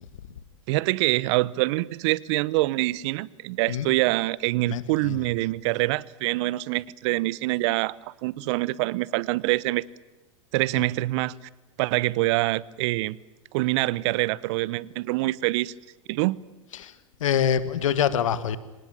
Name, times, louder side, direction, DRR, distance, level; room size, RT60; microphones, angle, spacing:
voice 1, 0.7-9.8 10.5-11.3 11.8-13.2 13.5-15.7 16.1-16.4, right 19 dB, 60° right, 22 dB, 0.9 m, -25 dB
voice 2, 4.7-5.2 10.8-10.9 16.8-16.9 17.2-18.6, left 9 dB, 80° left, 14 dB, 1.9 m, -25 dB
26.0 x 19.5 x 8.8 m, 1.1 s
hypercardioid pair, 100°, 17 cm